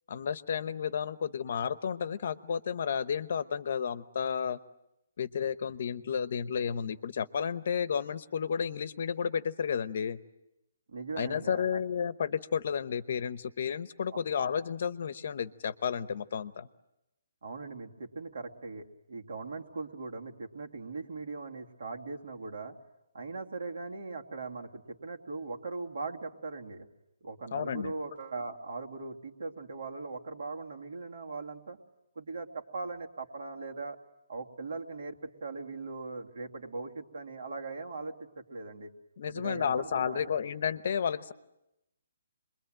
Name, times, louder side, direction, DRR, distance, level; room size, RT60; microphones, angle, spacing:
voice 1, 0.1-4.6 5.2-10.2 11.2-16.7 27.5-27.9 39.2-41.3, left 7 dB, 45° left, 15 dB, 0.9 m, -32 dB
voice 2, 10.9-11.8 17.4-22.8 23.1-26.9 27.2-31.8 32.1-34.0 34.3-38.9 39.3-40.3, right 3 dB, 55° right, 3 dB, 2.5 m, -40 dB
27.5 x 22.0 x 9.0 m, 0.88 s
hypercardioid pair, 175°, 0 cm